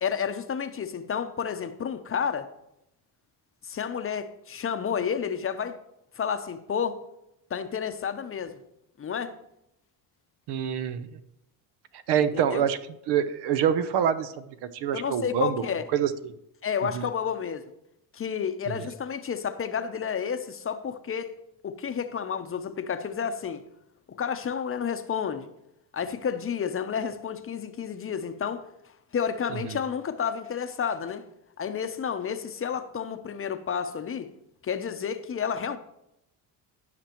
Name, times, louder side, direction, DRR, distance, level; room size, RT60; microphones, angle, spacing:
voice 1, 0.0-2.5 3.6-5.8 6.2-7.0 7.5-8.6 9.0-9.3 12.3-12.6 14.9-15.8 16.6-17.6 18.1-21.3 21.6-23.6 24.1-25.5 25.9-28.6 29.1-31.2 31.6-34.3 34.6-35.8, left 7 dB, 30° left, 0.7 m, -30 dB
voice 2, 10.5-11.2 12.1-12.8 13.1-14.3 14.6-15.6 15.9-16.3 16.9-17.1 18.8-18.9 29.6-29.8, right 9 dB, 70° right, 0.8 m, -26 dB
15.5 x 5.9 x 3.0 m
supercardioid pair, 90°, 42 cm